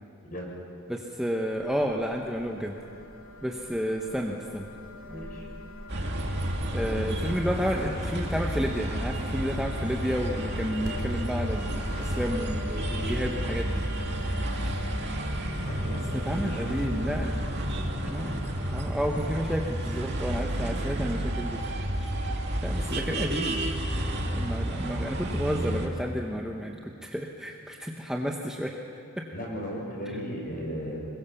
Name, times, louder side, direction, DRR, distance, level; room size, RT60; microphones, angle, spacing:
voice 1, 0.9-2.8 3.4-4.7 6.7-13.8 14.6-14.8 16.1-17.5 18.1-21.6 22.0-22.1 22.6-23.6 24.3-28.8 29.2-29.3, equal, 5° right, 0 dB, 1.2 m, -31 dB
sound 1, 1.5-20.7, left 2 dB, 65° left, 3.0 m, -42 dB
voice 2, 5.0-5.5 6.8-7.0 7.3-7.5 7.8-7.9 15.6-16.9 24.7-24.8 29.3-31.0, equal, 40° left, -1 dB, 6.4 m, -36 dB
sound 2, 5.9-25.9, right 1 dB, 50° right, 2.6 m, -31 dB
26.0 x 22.5 x 7.2 m, 2.5 s
head